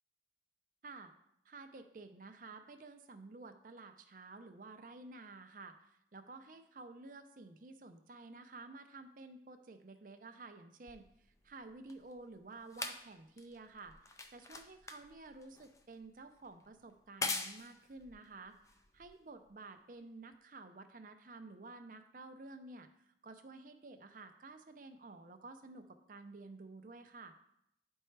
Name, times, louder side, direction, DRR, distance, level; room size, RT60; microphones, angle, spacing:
voice 1, 1.5-11.0 11.4-13.9 14.3-18.5 18.9-27.3, right 3 dB, 50° right, 7 dB, 0.6 m, -52 dB
sound 1, 10.9-19.5 20.3-20.4, left 3 dB, 15° left, 0.4 m, -45 dB
10.0 x 4.4 x 3.3 m, 0.78 s
head